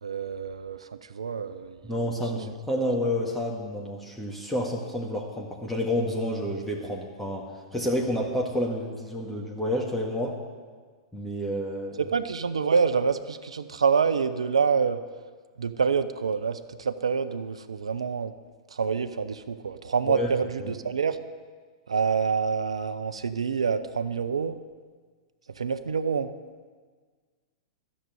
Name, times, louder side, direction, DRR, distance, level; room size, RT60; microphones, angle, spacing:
voice 1, 0.0-2.1 12.0-15.0 15.6-18.3 18.7-21.2 21.9-24.6 25.5-26.3, right 5 dB, 85° right, 11 dB, 0.6 m, -27 dB
voice 2, 1.8-10.4 11.1-12.0 20.1-20.3 20.6-20.7, left 1 dB, 5° left, -2 dB, 1.8 m, -29 dB
12.5 x 6.6 x 9.2 m, 1.5 s
hypercardioid pair, 110°, 3 cm